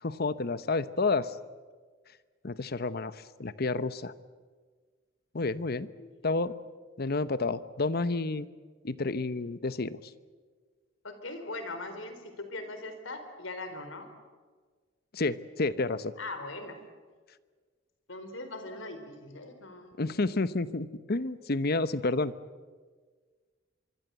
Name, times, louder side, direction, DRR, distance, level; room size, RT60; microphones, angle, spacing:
voice 1, 0.0-1.4 2.4-4.1 5.3-5.9 6.2-6.5 7.0-8.5 8.8-10.0 15.1-16.1 20.0-22.3, left 3 dB, 50° left, 14 dB, 0.9 m, -30 dB
voice 2, 11.0-14.1 16.2-16.8 18.1-19.9, left 2 dB, 80° left, 8 dB, 4.1 m, -40 dB
25.0 x 23.5 x 8.2 m, 1.5 s
head